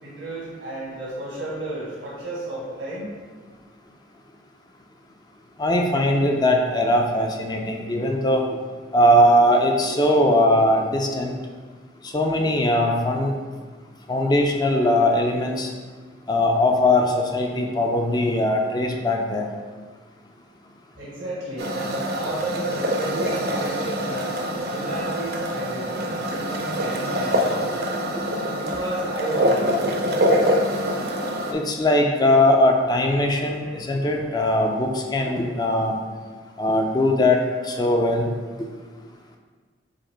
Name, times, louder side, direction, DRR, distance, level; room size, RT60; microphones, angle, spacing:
voice 1, 0.0-3.1 21.0-24.3 24.7-27.7 28.6-29.7, right 1 dB, 90° right, -7 dB, 1.2 m, -32 dB
voice 2, 5.6-8.4 8.9-11.4 12.1-13.3 14.1-15.7 16.3-19.5 31.5-35.9 36.6-37.4 37.7-38.3, left 1 dB, 20° left, 2 dB, 0.4 m, -20 dB
sound 1, 21.6-31.5, equal, 55° right, 0.5 m, -25 dB
5.0 x 2.5 x 4.3 m, 1.5 s
head